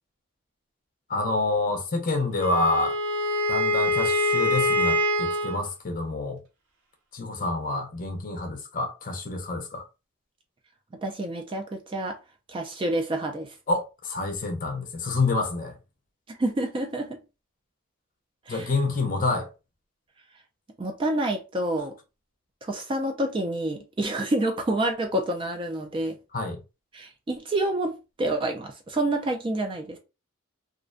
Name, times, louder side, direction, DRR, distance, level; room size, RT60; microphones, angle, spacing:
voice 1, 1.1-3.0 3.5-6.4 7.1-9.8 13.7-15.8 18.5-19.5 26.3-26.6, left 2 dB, 40° left, 0.5 m, -27 dB
Wind instrument woodwind instrument, 2.4-5.6, left 1 dB, 85° right, 0.7 m, -24 dB
voice 2, 11.0-12.2 12.5-13.6 16.3-17.2 18.5-18.7 20.8-22.0 22.6-26.2 26.9-30.0, right 1 dB, 25° right, 0.3 m, -28 dB
2.4 x 2.1 x 2.4 m
head